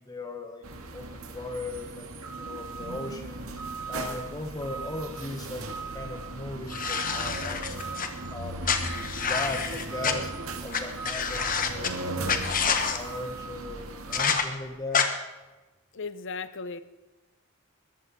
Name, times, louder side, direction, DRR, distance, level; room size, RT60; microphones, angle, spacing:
voice 1, 0.0-8.6 9.2-15.1, left 2 dB, 15° left, 5 dB, 1.0 m, -38 dB
sound 1, 0.6-14.4, right 3 dB, 65° right, 2.0 m, -37 dB
sound 2, 6.7-8.1 8.6-10.1 10.7-10.8 11.0-11.9 12.3-13.0 14.1-14.4 14.9-15.1, left 6 dB, 40° left, 1.4 m, -27 dB
voice 2, 15.9-16.8, left 4 dB, 55° left, 14 dB, 0.8 m, -36 dB
21.5 x 14.0 x 4.2 m, 1.1 s
head